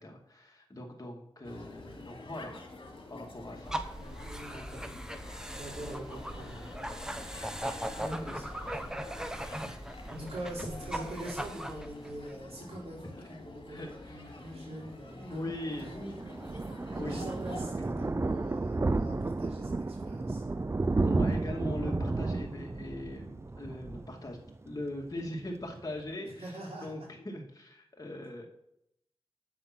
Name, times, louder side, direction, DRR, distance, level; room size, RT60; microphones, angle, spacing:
voice 1, 0.0-2.7 3.1-3.7 8.2-8.4 9.6-9.7 13.2-13.3 13.7-14.3 14.7-14.8 15.2-16.2 16.9-17.2 21.0-24.4 24.6-26.4 26.8-28.4, left 1 dB, 35° left, 0 dB, 2.4 m, -40 dB
sound 1, 1.4-17.7, left 2 dB, 60° left, 2.4 m, -48 dB
sound 2, 3.6-12.3, right 1 dB, 5° right, 1.0 m, -39 dB
voice 2, 3.9-4.8 5.5-6.6 8.0-9.7 10.1-15.5 17.0-20.4 26.2-26.9, right 1 dB, 85° right, -3 dB, 4.0 m, -44 dB
Thunder, 15.4-24.8 25.2-25.4 25.7-25.8 26.0-26.1, right 3 dB, 25° right, 0.4 m, -32 dB
8.8 x 7.4 x 6.2 m, 0.78 s
wide cardioid pair, 65°, 10 cm